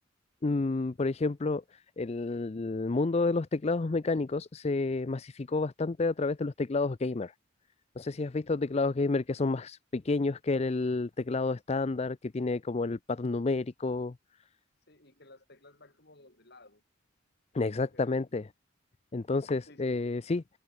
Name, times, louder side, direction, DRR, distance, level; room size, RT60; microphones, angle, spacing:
voice 1, 0.4-7.3 8.0-14.1 17.5-18.4 19.1-20.4, left 3 dB, 30° left, 0.5 m, -30 dB
voice 2, 8.5-9.1 14.9-16.8 17.7-18.3 19.7-20.2, left 2 dB, 55° left, 7.4 m, -58 dB
head